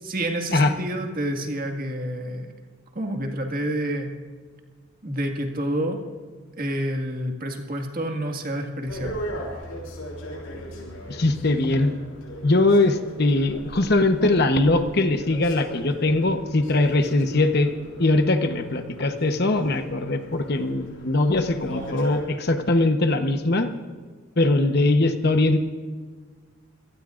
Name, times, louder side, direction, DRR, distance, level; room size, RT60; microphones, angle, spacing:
voice 1, 0.0-2.5 3.0-4.1 5.0-6.0 6.6-9.2, right 1 dB, 40° right, 3 dB, 2.0 m, -28 dB
sound 1, 8.9-22.2, equal, 80° left, 6.2 m, -39 dB
voice 2, 11.1-11.9 12.4-17.7 18.0-23.7 24.4-25.6, left 2 dB, 50° left, 7 dB, 1.0 m, -21 dB
26.0 x 18.0 x 2.6 m, 1.5 s
head